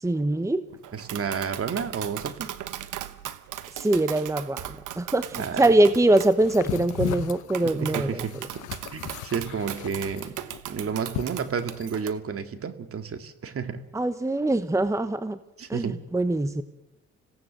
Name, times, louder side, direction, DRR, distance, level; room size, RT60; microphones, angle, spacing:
voice 1, 0.0-0.6 3.7-8.2 13.9-15.4 15.7-16.6, right 1 dB, 10° right, 12 dB, 1.1 m, -23 dB
Tap, 0.8-12.1, right 12 dB, 85° right, 1.2 m, -38 dB
voice 2, 0.9-2.5 5.4-5.6 7.6-8.3 8.9-10.4 10.7-13.8 15.6-16.0, right 6 dB, 50° right, 9 dB, 2.2 m, -31 dB
sound 1, 6.2-12.0, left 13 dB, 85° left, 1.0 m, -36 dB
26.5 x 17.0 x 7.6 m, 0.92 s
cardioid pair, 90°, 30 cm